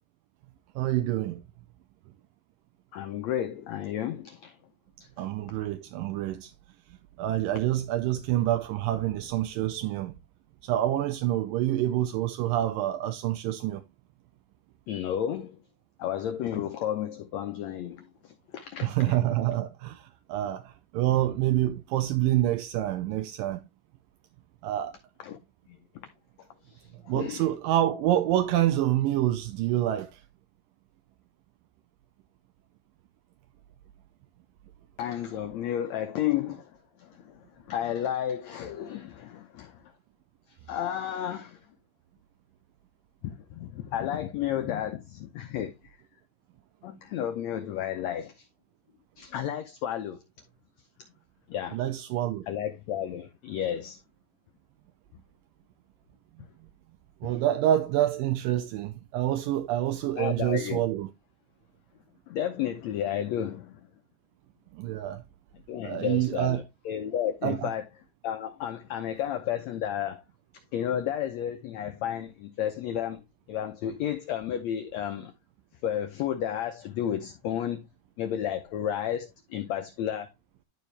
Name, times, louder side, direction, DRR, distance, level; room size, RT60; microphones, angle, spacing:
voice 1, 0.8-1.4 5.2-6.5 7.2-10.1 10.6-13.8 18.8-23.6 24.6-24.9 27.1-30.2 51.7-52.4 57.2-61.1 64.7-65.2 65.8-66.6 67.4-67.7, right 13 dB, 80° right, 2.3 m, -27 dB
voice 2, 2.9-4.6 5.0-5.1 14.9-15.6 16.0-19.2 25.2-25.4 25.7-26.1 26.6-27.5 35.0-39.9 40.7-41.6 43.2-46.0 46.8-48.5 49.2-50.2 51.5-51.8 52.5-54.0 57.2-57.4 60.2-60.8 62.3-63.8 65.7-67.8 68.2-70.2 70.7-73.2 73.5-75.3 75.8-77.9 78.2-80.3, left 10 dB, 75° left, 1.6 m, -32 dB
11.5 x 4.5 x 3.3 m
omnidirectional pair, 4.0 m